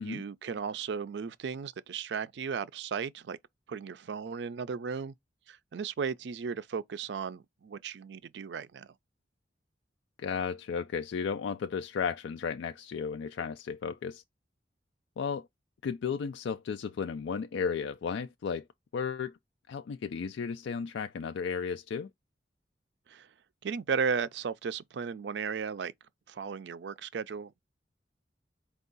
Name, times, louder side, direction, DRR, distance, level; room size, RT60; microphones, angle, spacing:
voice 1, 0.0-3.4 3.7-5.1 5.5-8.9 23.1-23.3 23.6-25.9 26.3-27.6, right 6 dB, 70° right, 0.4 m, -35 dB
voice 2, 10.2-14.2 15.2-15.5 15.8-18.6 18.9-19.4 19.7-22.1, left 6 dB, 85° left, 0.3 m, -34 dB
4.5 x 2.3 x 3.8 m
head